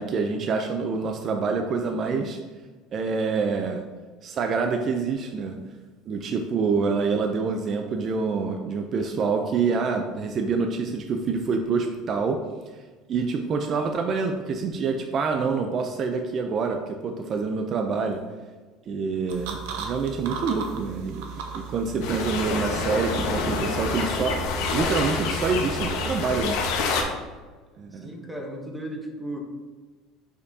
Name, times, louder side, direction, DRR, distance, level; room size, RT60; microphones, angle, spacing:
voice 1, 0.0-2.4 2.9-3.8 4.2-5.6 6.1-12.4 13.1-18.2 18.9-21.3 21.5-26.6 27.8-28.1, right 4 dB, 35° right, 4 dB, 0.4 m, -26 dB
sound 1, 19.3-25.9, right 6 dB, 90° right, 0.9 m, -38 dB
sound 2, 22.0-27.0, left 4 dB, 75° left, 1.0 m, -27 dB
voice 2, 27.9-29.4, right 1 dB, 5° right, 1 dB, 0.9 m, -35 dB
6.5 x 5.3 x 2.7 m, 1.3 s
cardioid pair, 150°, 0 cm